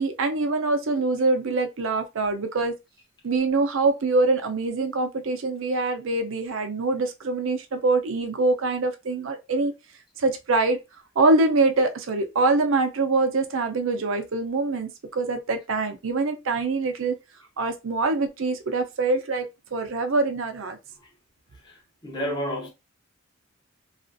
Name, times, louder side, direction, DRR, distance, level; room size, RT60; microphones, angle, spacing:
voice 1, 0.0-2.7 3.2-9.7 10.2-10.8 11.2-17.1 17.6-19.4 19.7-20.8, right 3 dB, 70° right, 0.5 m, -24 dB
voice 2, 21.6-22.7, equal, 20° left, 0.6 m, -31 dB
2.9 x 2.4 x 2.5 m
head